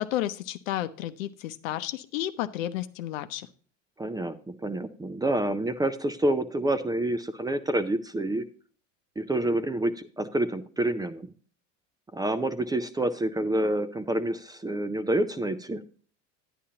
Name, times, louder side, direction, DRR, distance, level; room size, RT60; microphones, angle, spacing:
voice 1, 0.0-3.5, left 13 dB, 85° left, 12 dB, 0.8 m, -32 dB
voice 2, 4.0-8.4 9.2-11.3 12.1-15.8, right 1 dB, 10° right, 12 dB, 0.4 m, -28 dB
10.0 x 9.8 x 2.8 m, 0.44 s
supercardioid pair, 100°, 39 cm